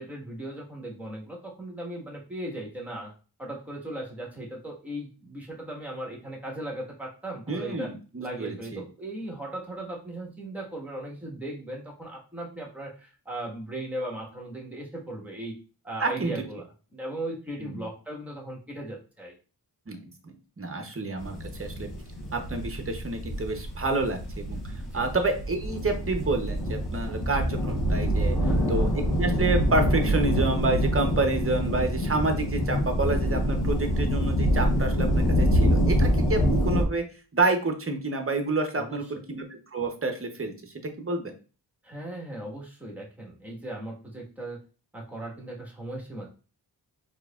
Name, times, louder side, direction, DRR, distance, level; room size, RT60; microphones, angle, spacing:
voice 1, 0.0-3.1 3.4-7.9 8.2-15.5 15.8-16.6 16.9-19.3 24.8-25.1 28.4-28.8 38.8-39.0 41.8-44.6 44.9-46.3, right 1 dB, 5° right, -2 dB, 1.4 m, -37 dB
voice 2, 7.5-8.8 16.0-16.3 17.6-17.8 19.9-21.9 22.3-24.6 24.9-28.4 28.7-28.9 29.2-37.0 37.3-41.3, right 3 dB, 30° right, 5 dB, 0.8 m, -29 dB
sound 1, 21.2-36.8, equal, 65° left, 1.0 m, -26 dB
4.5 x 2.9 x 2.4 m, 0.35 s
wide cardioid pair, 65°, 42 cm